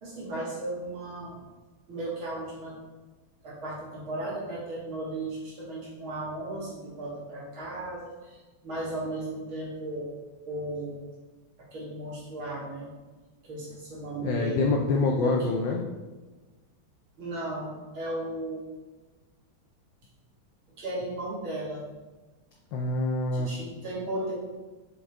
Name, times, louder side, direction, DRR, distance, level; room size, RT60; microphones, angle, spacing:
voice 1, 0.0-1.4 1.9-2.7 3.4-10.1 10.4-11.0 11.7-12.9 13.4-14.7 15.2-15.6 17.2-18.6 20.8-21.8 23.3-24.3, right 1 dB, 70° right, -6 dB, 2.8 m, -35 dB
voice 2, 14.2-15.8 22.7-23.5, left 3 dB, 70° left, 1 dB, 1.2 m, -26 dB
6.3 x 5.0 x 3.6 m, 1.2 s
omnidirectional pair, 2.3 m